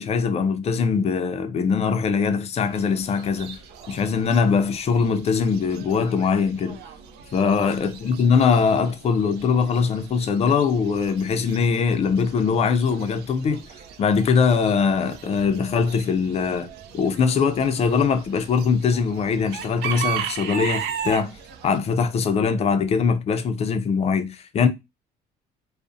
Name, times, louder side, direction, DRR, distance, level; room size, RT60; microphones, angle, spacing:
voice 1, 0.0-3.6 3.9-6.8 7.3-13.6 14.0-21.3 21.6-24.7, left 5 dB, 40° left, 0.4 m, -22 dB
Chicken rooster / Bird, 2.6-21.8, right 8 dB, 75° right, 0.4 m, -37 dB
2.5 x 2.0 x 2.4 m
cardioid pair, 110°, 17 cm